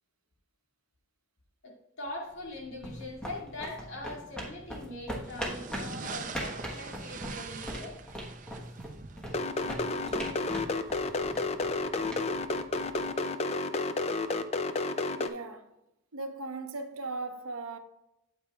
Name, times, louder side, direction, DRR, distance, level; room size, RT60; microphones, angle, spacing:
voice 1, 1.6-8.0, left 1 dB, 60° left, 2.2 m, -42 dB
sound 1, 2.4-13.2, equal, 5° left, 1.2 m, -41 dB
sound 2, 5.2-11.2, right 5 dB, 35° right, 0.6 m, -44 dB
sound 3, 9.3-15.3, left 3 dB, 30° left, 0.4 m, -30 dB
voice 2, 15.2-15.7 16.1-17.8, right 3 dB, 85° right, 1.0 m, -38 dB
8.8 x 8.7 x 2.4 m
head